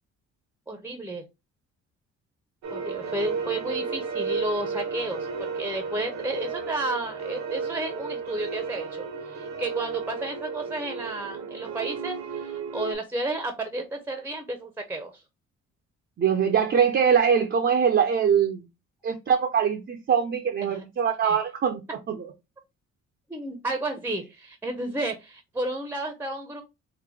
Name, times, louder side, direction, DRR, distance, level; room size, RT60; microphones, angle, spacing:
voice 1, 0.7-1.2 2.7-15.2 20.7-20.8 21.2-21.4 23.3-26.6, right 2 dB, 5° right, 0.7 m, -32 dB
sound 1, 2.6-12.9, right 5 dB, 70° right, 0.9 m, -33 dB
voice 2, 16.2-18.6 19.0-22.2, right 7 dB, 40° right, 0.6 m, -23 dB
3.8 x 2.1 x 3.3 m
cardioid pair, 90°, 30 cm